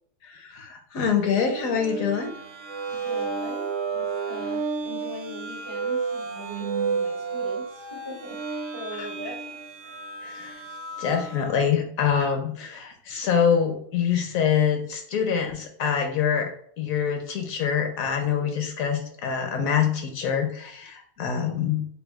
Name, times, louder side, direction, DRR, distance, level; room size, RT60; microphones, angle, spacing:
voice 1, 0.2-2.3 10.2-10.6 11.0-21.9, left 7 dB, 65° left, 4 dB, 1.0 m, -25 dB
sound 1, 1.3-11.6, right 5 dB, 60° right, 0.9 m, -32 dB
voice 2, 2.9-9.6, equal, 35° right, -2 dB, 0.4 m, -41 dB
6.7 x 2.3 x 2.3 m, 0.62 s
omnidirectional pair, 1.7 m